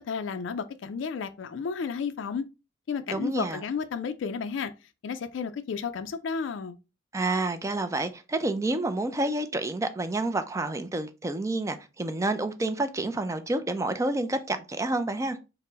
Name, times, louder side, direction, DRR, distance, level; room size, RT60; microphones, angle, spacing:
voice 1, 0.1-2.5 2.9-4.7 5.0-6.8, left 6 dB, 70° left, 0.3 m, -32 dB
voice 2, 3.1-3.6 7.1-15.4, right 2 dB, 15° right, 0.4 m, -29 dB
4.3 x 2.1 x 3.8 m
head